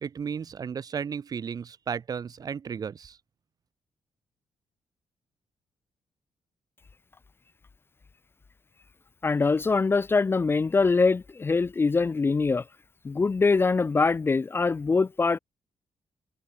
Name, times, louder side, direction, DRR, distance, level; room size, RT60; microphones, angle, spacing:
voice 1, 0.0-3.2, right 6 dB, 50° right, 1.6 m, -34 dB
voice 2, 9.2-12.6 13.0-15.4, left 4 dB, 25° left, 0.7 m, -23 dB
cardioid pair, 105°, 8 cm